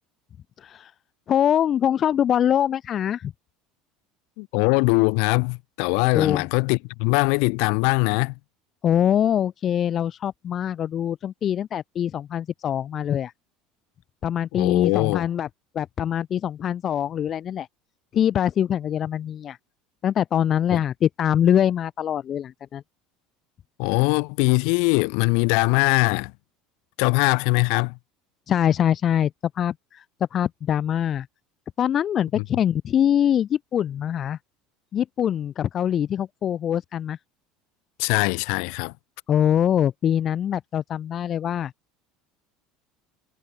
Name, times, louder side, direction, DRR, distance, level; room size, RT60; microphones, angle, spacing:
voice 1, 0.6-0.9 1.3-3.3 6.1-6.4 8.8-13.3 14.2-15.5 15.7-17.7 18.1-19.6 20.0-22.8 28.5-30.0 30.3-31.3 31.8-34.4 34.9-37.2 39.3-41.7, left 9 dB, 45° left, 1.7 m, -23 dB
voice 2, 4.4-8.3 14.5-15.3 20.7-20.8 23.8-26.3 27.0-28.0 32.4-32.5 38.0-38.9, left 40 dB or more, 70° left, 2.2 m, -21 dB
hypercardioid pair, 85°, 0 cm